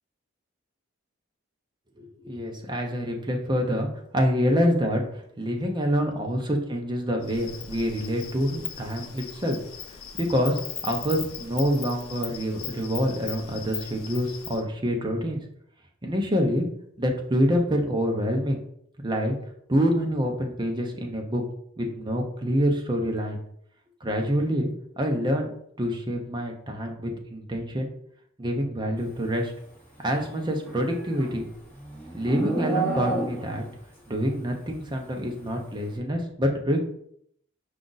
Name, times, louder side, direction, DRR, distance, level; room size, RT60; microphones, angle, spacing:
voice 1, 2.0-5.1 5.4-6.4 6.7-9.6 10.1-10.6 10.8-15.4 16.0-16.7 17.0-18.6 19.0-19.4 19.7-21.4 21.8-23.4 24.0-25.5 25.8-27.9 28.4-29.5 30.0-31.4 32.1-33.6 34.1-36.8, equal, 20° right, 2 dB, 0.6 m, -26 dB
Insect, 7.2-14.6, left 8 dB, 85° left, 0.6 m, -39 dB
Livestock farm animals working animals, 30.4-33.7, right 2 dB, 10° left, 1.4 m, -30 dB
5.0 x 2.5 x 3.9 m, 0.69 s
head